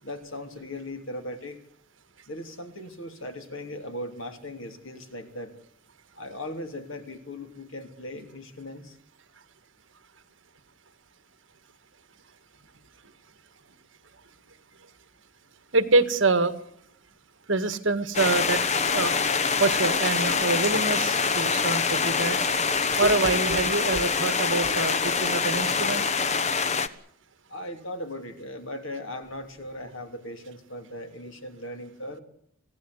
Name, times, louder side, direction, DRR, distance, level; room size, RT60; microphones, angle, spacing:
voice 1, 0.0-1.6 2.3-5.6 6.1-9.0 27.5-32.2, left 1 dB, 70° left, 6 dB, 3.2 m, -38 dB
voice 2, 15.7-16.6 17.5-18.6 18.9-19.2 19.6-22.4 23.0-26.1, right 3 dB, 60° right, 11 dB, 1.8 m, -25 dB
sound 1, 18.1-26.9, left 5 dB, 35° left, 1.1 m, -25 dB
25.5 x 17.0 x 8.1 m, 0.69 s
head